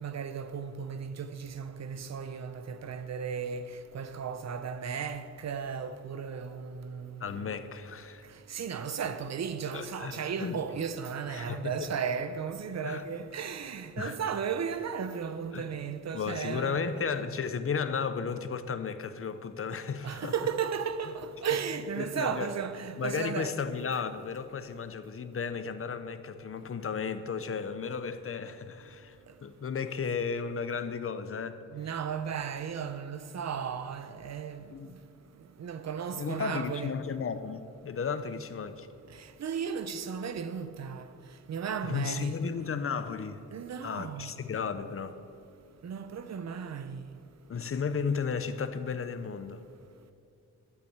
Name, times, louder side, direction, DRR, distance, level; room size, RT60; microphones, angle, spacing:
voice 1, 0.0-7.4 8.5-16.9 20.0-23.6 31.7-35.0 35.6-36.9 39.2-41.1 41.5-42.4 43.5-44.3 45.8-47.2, right 7 dB, 60° right, 0.9 m, -35 dB
voice 2, 7.2-8.3 9.7-10.6 11.3-11.7 12.8-13.0 14.0-14.2 15.5-15.6 16.1-20.3 22.0-22.5 23.0-31.6 34.7-34.9 36.2-38.9 41.8-43.4 43.8-45.2 47.5-49.6, left 5 dB, 45° left, 0.8 m, -34 dB
12.0 x 8.3 x 8.1 m
cardioid pair, 105°, 31 cm